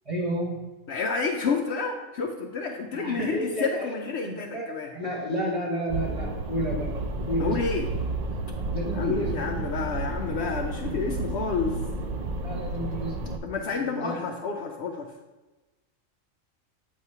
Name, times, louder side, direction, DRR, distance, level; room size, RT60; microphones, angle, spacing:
voice 1, 0.0-0.6 2.9-3.9 4.2-4.7 4.9-6.9 7.3-7.6 8.7-9.5 12.4-13.4 13.8-14.2, equal, 25° right, -5 dB, 1.7 m, -31 dB
voice 2, 0.9-4.9 7.4-7.9 8.9-11.8 13.4-15.1, left 5 dB, 65° left, 3 dB, 0.8 m, -29 dB
sound 1, 5.9-13.4, right 2 dB, 55° right, 0.4 m, -31 dB
8.2 x 3.2 x 5.4 m, 1.2 s
omnidirectional pair, 1.4 m